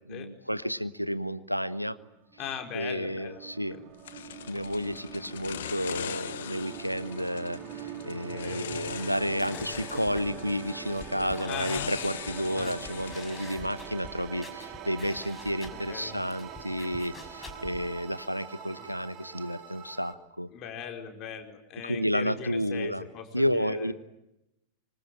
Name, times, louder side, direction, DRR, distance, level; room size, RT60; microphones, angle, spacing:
voice 1, 0.0-2.0 2.7-3.8 4.5-20.5 21.8-23.0 23.3-23.9, equal, 90° right, 15 dB, 1.1 m, -31 dB
sound 1, 1.8-20.1, right 9 dB, 35° right, 3.1 m, -44 dB
voice 2, 2.4-3.9 8.1-8.7 11.4-11.9 12.4-12.7 15.7-16.1 17.4-17.5 18.8-18.9 20.5-23.9, left 8 dB, 35° left, 4 dB, 4.6 m, -40 dB
sound 2, 4.1-14.1, left 10 dB, 60° left, 1.2 m, -41 dB
sound 3, 8.7-17.9, left 3 dB, 15° left, 5.7 m, -48 dB
26.0 x 25.0 x 9.0 m, 0.88 s
figure-of-eight pair, 90°, 0 cm